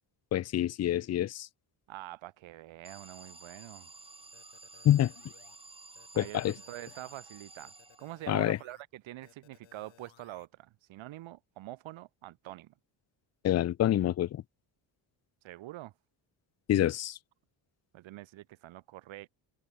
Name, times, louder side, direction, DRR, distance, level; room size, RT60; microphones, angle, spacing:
voice 1, 0.3-1.5 4.8-5.1 6.2-6.5 8.3-8.6 13.4-14.4 16.7-17.2, left 12 dB, 35° left, 0.5 m, -27 dB
voice 2, 1.9-3.9 6.1-12.7 15.4-15.9 17.9-19.3, right 16 dB, 75° right, 1.5 m, -45 dB
Alarm, 2.8-8.4, right 3 dB, 10° right, 3.9 m, -52 dB
sound 1, 4.3-5.6 6.0-7.2 7.6-8.8 9.2-10.5, left 13 dB, 75° left, 6.5 m, -61 dB
cardioid pair, 175°, 47 cm